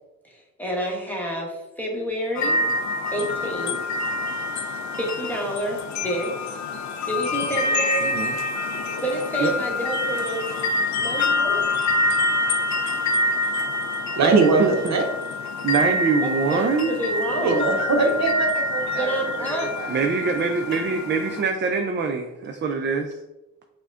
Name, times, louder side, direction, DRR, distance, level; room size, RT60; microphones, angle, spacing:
voice 1, 0.2-2.6 3.1-3.8 4.9-6.6 7.1-8.1 9.0-10.5 11.0-11.8 16.2-17.9 19.0-19.7, right 1 dB, 5° left, -2 dB, 1.0 m, -29 dB
sound 1, 2.4-21.4, left 2 dB, 55° left, 0.4 m, -26 dB
voice 2, 8.0-8.3 9.4-9.5 14.3-14.9 15.6-17.0 19.9-23.2, right 4 dB, 35° right, 4 dB, 0.4 m, -23 dB
voice 3, 14.2-14.6 14.9-15.0 17.3-20.0, right 3 dB, 55° right, 2 dB, 0.8 m, -22 dB
5.9 x 2.2 x 2.4 m, 0.97 s
cardioid pair, 80°, 33 cm